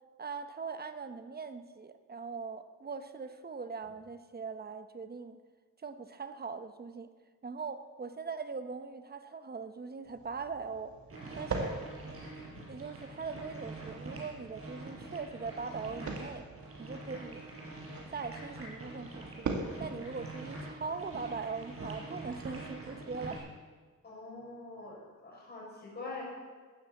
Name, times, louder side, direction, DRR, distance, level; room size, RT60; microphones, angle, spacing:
voice 1, 0.2-5.4 5.8-7.1 7.4-10.9 11.3-11.8 12.7-16.5 16.8-17.4 18.1-23.5, right 5 dB, 35° right, 10 dB, 0.9 m, -41 dB
sound 1, 10.0-22.4, right 4 dB, 75° right, 2.2 m, -44 dB
sound 2, 11.1-23.4, right 2 dB, 50° right, 5.3 m, -45 dB
voice 2, 24.0-26.2, left 3 dB, 35° left, -4 dB, 6.3 m, -44 dB
14.5 x 10.5 x 8.4 m, 1.5 s
wide cardioid pair, 145°, 29 cm